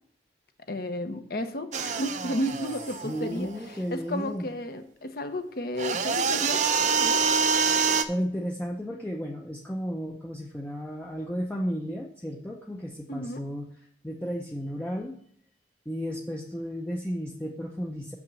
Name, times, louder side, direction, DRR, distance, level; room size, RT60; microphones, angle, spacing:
voice 1, 0.7-3.5 3.9-6.6 7.0-7.2 13.1-13.4, left 1 dB, 55° left, 7 dB, 1.0 m, -32 dB
sound 1, 1.7-3.7 5.8-8.0, right 5 dB, 40° right, 0.6 m, -26 dB
voice 2, 3.0-4.5 8.1-15.2 15.9-18.2, equal, 10° left, 0 dB, 0.6 m, -33 dB
7.0 x 6.0 x 6.3 m, 0.64 s
head